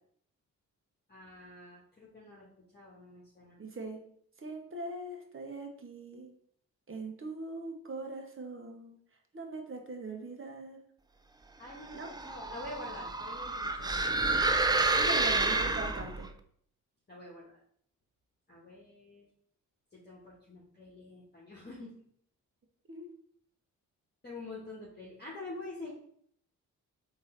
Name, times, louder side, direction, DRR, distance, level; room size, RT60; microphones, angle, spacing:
voice 1, 1.1-2.5 2.7-3.6 11.6-14.0 17.1-17.6 18.5-19.2 19.9-21.9 24.2-25.9, left 2 dB, 25° left, -5 dB, 1.4 m, -46 dB
voice 2, 3.6-4.0 4.4-6.3 6.9-9.0 9.3-10.8 11.9-12.1 14.9-16.3 22.9-23.1, right 2 dB, 35° right, 3 dB, 1.1 m, -41 dB
sound 1, 11.8-16.3, right 3 dB, 10° right, 0.4 m, -29 dB
3.6 x 2.9 x 4.4 m, 0.64 s
supercardioid pair, 45°, 38 cm